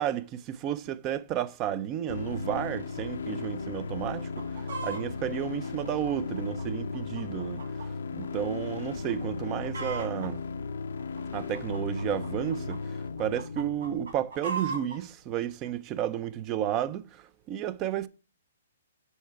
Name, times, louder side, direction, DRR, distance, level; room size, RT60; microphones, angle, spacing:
voice 1, 0.0-4.3 4.8-7.6 8.1-10.4 11.3-12.8 13.2-18.1, right 11 dB, 25° right, 0.5 m, -32 dB
sound 1, 2.1-14.1, left 4 dB, 80° left, 0.6 m, -36 dB
Chicken rooster, 4.2-5.0 5.6-7.9 8.2-8.3 8.9-9.1 9.4-10.3 11.0-12.8 13.2-15.0 15.7-15.8, right 4 dB, 90° right, 2.7 m, -38 dB
7.1 x 5.6 x 4.5 m
hypercardioid pair, 150°, 0 cm